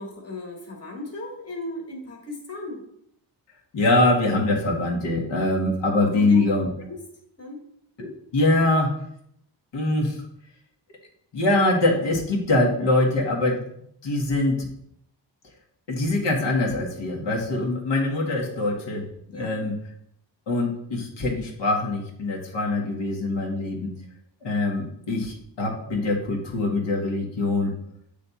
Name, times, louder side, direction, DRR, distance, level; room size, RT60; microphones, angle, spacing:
voice 1, 0.0-2.8 6.1-6.4 6.9-7.0 7.4-7.6 19.3-19.6, left 1 dB, 35° left, 0 dB, 1.5 m, -35 dB
voice 2, 3.7-6.7 8.0-8.9 9.7-10.2 11.3-13.6 14.0-14.7 15.9-19.7 20.5-23.9 24.4-27.7, left 2 dB, 75° left, 0 dB, 1.6 m, -23 dB
8.7 x 3.2 x 4.1 m, 0.71 s
wide cardioid pair, 150°, 43 cm